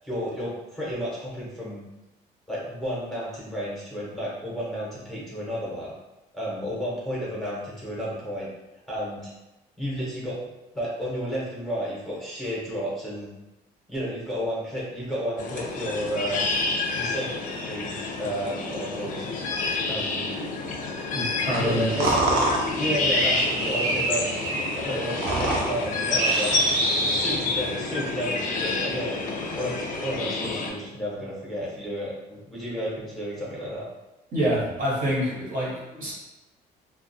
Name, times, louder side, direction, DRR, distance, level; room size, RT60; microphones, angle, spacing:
voice 1, 0.0-1.8 2.5-5.9 6.3-8.5 8.9-9.3 9.8-10.4 10.7-13.3 13.9-16.4 16.9-17.3 17.7-19.3 19.9-20.3 21.6-22.4 22.8-24.4 24.7-26.7 27.1-29.2 29.6-33.9, equal, ahead, -7 dB, 0.8 m, -31 dB
sound 1, 15.4-30.7, left 3 dB, 50° left, 0.4 m, -29 dB
voice 2, 21.1-22.1 34.3-36.1, equal, 55° right, -5 dB, 1.0 m, -27 dB
sound 2, 21.5-27.7, right 2 dB, 80° right, 0.6 m, -26 dB
2.3 x 2.1 x 2.6 m, 0.98 s
cardioid pair, 110°, 17 cm